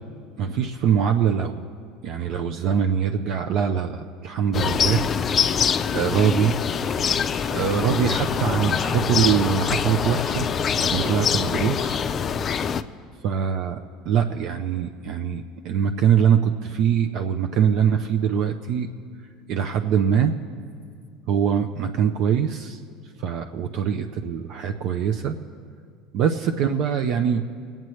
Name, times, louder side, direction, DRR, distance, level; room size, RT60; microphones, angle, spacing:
voice 1, 0.4-1.6 2.0-5.0 5.9-6.5 7.5-10.5 10.8-12.1 13.2-13.8 14.1-18.9 19.5-20.3 21.3-22.8 23.2-25.4 26.1-27.4, right 8 dB, 60° right, 5 dB, 0.5 m, -23 dB
sound 1, 4.5-12.8, left 7 dB, 35° left, 0.4 m, -24 dB
24.5 x 8.9 x 3.2 m, 2.2 s
supercardioid pair, 95°, 0 cm